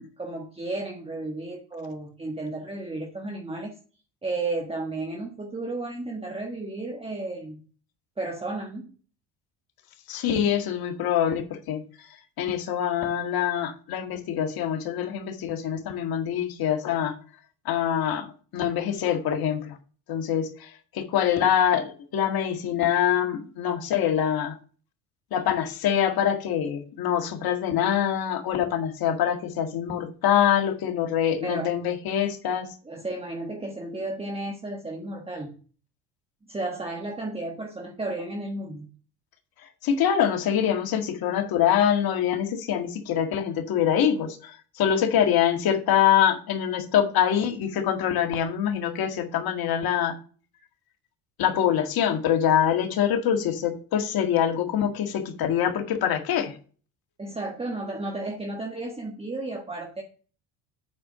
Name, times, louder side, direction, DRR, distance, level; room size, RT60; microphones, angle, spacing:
voice 1, 0.0-3.7 4.2-7.6 8.2-8.9 31.4-31.7 32.8-35.5 36.5-38.9 57.2-60.0, right 2 dB, 15° right, 1 dB, 1.4 m, -33 dB
voice 2, 10.1-11.8 12.4-17.2 17.7-18.3 18.5-19.8 20.1-24.6 25.3-32.7 39.8-50.2 51.4-56.5, left 9 dB, 55° left, 5 dB, 1.9 m, -24 dB
8.5 x 4.5 x 6.7 m, 0.39 s
supercardioid pair, 100°, 42 cm